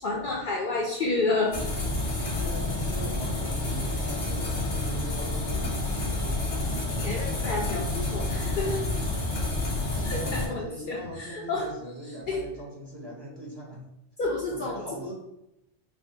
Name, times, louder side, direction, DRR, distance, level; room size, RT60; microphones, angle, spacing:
voice 1, 0.0-1.7 6.7-8.8 10.0-11.7 12.3-12.4 14.2-14.8, left 3 dB, 55° left, -2 dB, 0.6 m, -30 dB
sound 1, 1.5-10.5, left 2 dB, 85° left, 1.3 m, -29 dB
voice 2, 2.3-7.5 9.2-9.5 9.8-13.8 14.5-15.1, equal, 25° right, -4 dB, 0.8 m, -42 dB
5.7 x 2.1 x 2.7 m, 0.88 s
omnidirectional pair, 1.1 m